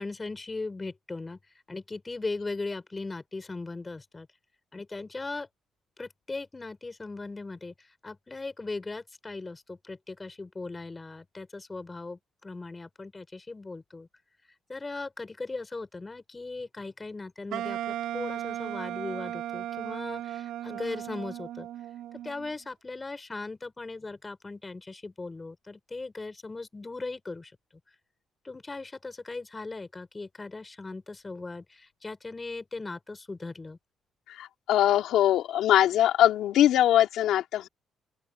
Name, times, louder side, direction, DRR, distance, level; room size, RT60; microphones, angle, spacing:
voice 1, 0.0-1.4 1.7-4.3 4.7-5.5 6.0-7.7 8.0-14.1 14.7-21.7 22.2-27.5 28.4-33.8, left 3 dB, 25° left, 5.7 m, -38 dB
Wind instrument woodwind instrument, 17.5-22.5, right 12 dB, 85° right, 4.0 m, -36 dB
voice 2, 34.3-37.7, left 12 dB, 85° left, 2.8 m, -22 dB
open air
cardioid pair, 90°, 0 cm